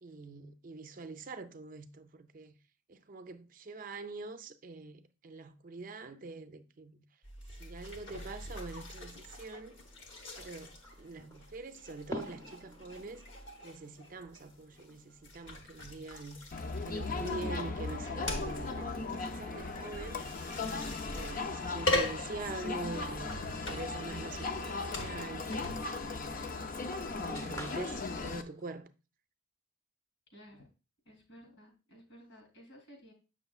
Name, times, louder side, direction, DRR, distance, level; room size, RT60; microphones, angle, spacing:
voice 1, 0.0-2.6 2.9-7.0 7.6-9.8 10.4-13.3 13.6-16.4 16.8-20.2 21.1-25.6 26.0-26.5 27.0-28.9, right 3 dB, 40° right, 0.5 m, -44 dB
sound 1, 7.2-25.8, left 1 dB, 60° left, 1.2 m, -41 dB
sound 2, 9.1-28.8, equal, 15° left, 0.8 m, -54 dB
Crowd, 16.5-28.4, left 3 dB, 40° left, 0.5 m, -37 dB
voice 2, 30.3-30.7 31.0-33.1, equal, 75° left, 2.9 m, -55 dB
7.8 x 6.1 x 2.4 m
head